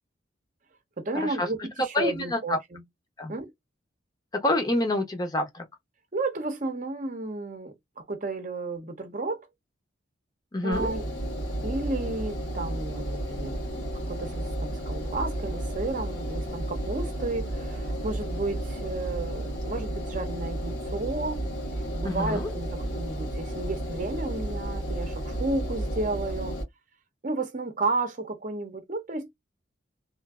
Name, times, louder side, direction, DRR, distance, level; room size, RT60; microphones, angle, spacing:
voice 1, 1.0-2.8 3.3-3.5 6.1-9.5 10.6-11.0 11.6-13.6 13.9-21.4 21.9-26.6 27.2-29.3, right 2 dB, 40° right, 0.7 m, -32 dB
voice 2, 1.9-2.6 3.2-3.3 4.4-5.6 10.5-10.9 22.0-22.5, left 2 dB, 20° left, 0.7 m, -27 dB
Engine, 10.7-26.6, right 1 dB, 80° left, 1.6 m, -32 dB
3.2 x 2.5 x 2.3 m
head